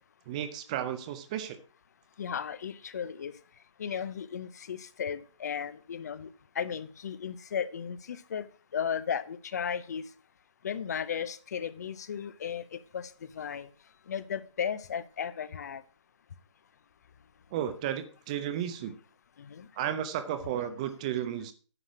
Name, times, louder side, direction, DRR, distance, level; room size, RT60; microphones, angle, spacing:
voice 1, 0.3-1.6 17.5-18.9 19.8-21.5, right 10 dB, 15° right, 0.5 m, -33 dB
voice 2, 2.2-3.3 3.8-6.3 6.5-8.5 8.7-10.0 10.6-13.7 14.1-15.8 19.4-19.7, left 7 dB, 35° left, 0.6 m, -35 dB
9.9 x 6.3 x 6.1 m
figure-of-eight pair, 155°, 16 cm